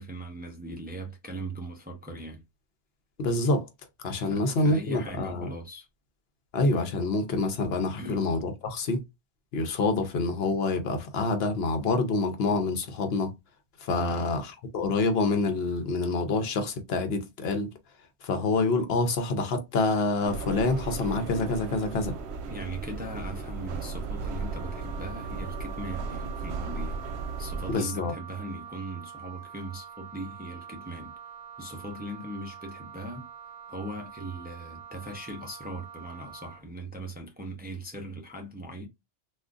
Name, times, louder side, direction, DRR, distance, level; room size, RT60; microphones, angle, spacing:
voice 1, 0.0-2.4 4.2-5.9 8.0-8.2 14.0-14.3 22.5-27.0 27.4-31.1 31.6-33.3 33.7-38.9, right 1 dB, 10° right, 0.5 m, -39 dB
voice 2, 3.2-3.7 4.0-5.5 6.5-9.0 9.5-13.3 13.8-17.7 18.2-22.2 27.7-28.1, left 3 dB, 65° left, 0.9 m, -27 dB
sound 1, 20.2-27.7, right 4 dB, 80° right, 0.9 m, -35 dB
Wind instrument woodwind instrument, 24.2-36.7, right 8 dB, 50° right, 0.8 m, -45 dB
3.6 x 2.4 x 2.4 m
omnidirectional pair, 1.1 m